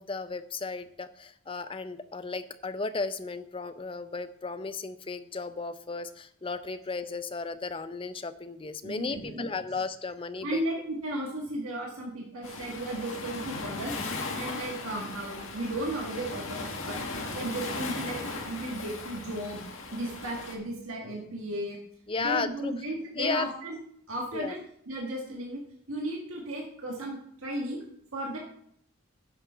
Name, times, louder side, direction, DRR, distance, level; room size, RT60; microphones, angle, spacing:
voice 1, 0.0-10.6 22.1-22.7 23.2-23.5 24.3-24.5, left 4 dB, 25° left, 11 dB, 0.5 m, -34 dB
voice 2, 8.8-9.7 10.4-17.0 17.3-19.6 19.9-21.8 22.2-23.8 24.1-24.6 24.8-25.6 25.9-27.8 28.1-28.4, right 1 dB, 80° right, -1 dB, 1.7 m, -35 dB
Waves surf, 12.4-20.6, left 3 dB, 70° left, 2.0 m, -37 dB
10.0 x 6.2 x 5.6 m, 0.70 s
head